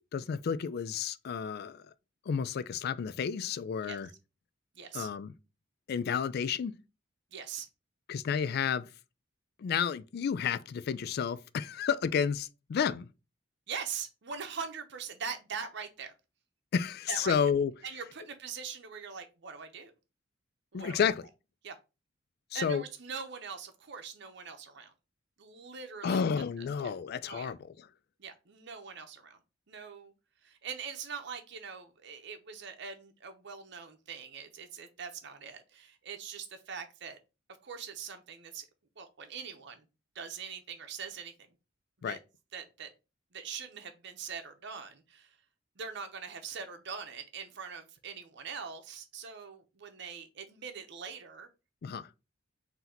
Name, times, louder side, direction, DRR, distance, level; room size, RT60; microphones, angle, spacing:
voice 1, 0.1-1.9 2.3-4.1 4.9-5.3 5.9-6.7 8.1-8.9 9.6-13.1 16.7-17.7 20.7-21.3 22.5-22.8 26.0-27.9 42.0-42.2 51.8-52.1, left 7 dB, 55° left, 0.3 m, -31 dB
voice 2, 4.8-5.1 7.3-7.7 13.7-16.1 17.1-17.3 17.8-19.9 20.7-21.0 21.6-21.8 22.5-24.9 25.4-26.2 26.6-26.7 27.3-27.5 28.2-29.4 29.7-30.1 30.4-37.2 37.6-38.6 39.0-39.8 40.1-41.3 42.1-42.2 42.5-42.9 43.3-45.4 45.8-51.5, right 6 dB, 60° right, 0.8 m, -42 dB
3.9 x 2.8 x 4.3 m
head